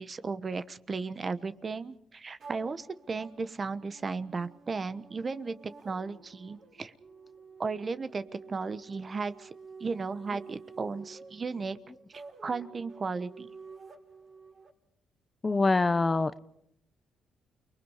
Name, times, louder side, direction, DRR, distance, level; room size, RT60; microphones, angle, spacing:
voice 1, 0.0-5.6 5.8-6.9 7.6-9.5 9.8-11.8 12.4-13.5, right 4 dB, 35° right, 13 dB, 1.1 m, -35 dB
sound 1, 2.4-14.7, right 4 dB, 55° right, 5.2 m, -50 dB
voice 2, 15.4-16.4, left 3 dB, 25° left, 14 dB, 1.0 m, -25 dB
29.5 x 20.5 x 5.0 m, 0.71 s
cardioid pair, 90°, 0 cm